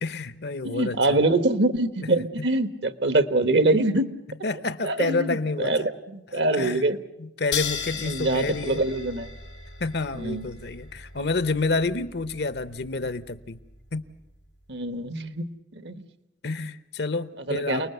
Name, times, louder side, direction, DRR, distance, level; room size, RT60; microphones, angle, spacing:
voice 1, 0.0-1.2 4.4-5.9 6.3-6.8 7.2-8.8 9.8-13.6 13.9-14.0 16.4-17.9, left 3 dB, 65° left, 0.9 m, -29 dB
voice 2, 0.6-4.1 4.8-7.0 8.0-9.3 10.1-10.5 14.7-16.0 17.5-17.9, right 2 dB, 70° right, 1.3 m, -24 dB
sound 1, 7.5-14.5, left 6 dB, 85° left, 2.2 m, -37 dB
29.0 x 20.0 x 6.8 m
head